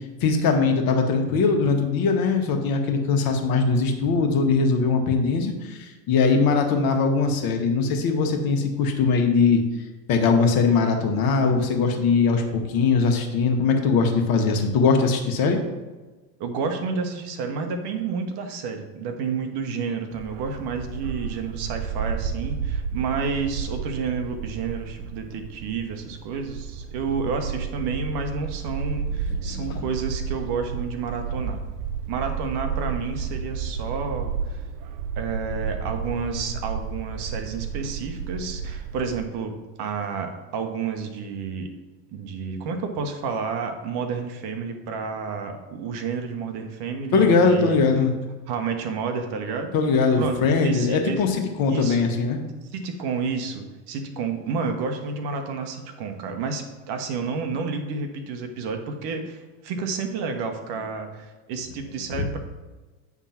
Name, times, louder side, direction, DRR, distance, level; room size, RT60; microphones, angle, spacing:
voice 1, 0.2-9.6 10.1-15.6 29.4-29.8 47.1-48.1 49.7-52.4 62.1-62.2, left 4 dB, 45° left, 3 dB, 1.4 m, -21 dB
voice 2, 16.4-31.6 32.1-34.6 35.2-41.7 42.1-47.9 48.5-49.7 50.2-51.2 51.7-52.1 52.7-62.4, right 5 dB, 50° right, 6 dB, 1.3 m, -30 dB
Bark, 20.1-39.3, right 6 dB, 70° right, 0.6 m, -32 dB
8.7 x 3.7 x 5.8 m, 1.2 s
hypercardioid pair, 100°, 50 cm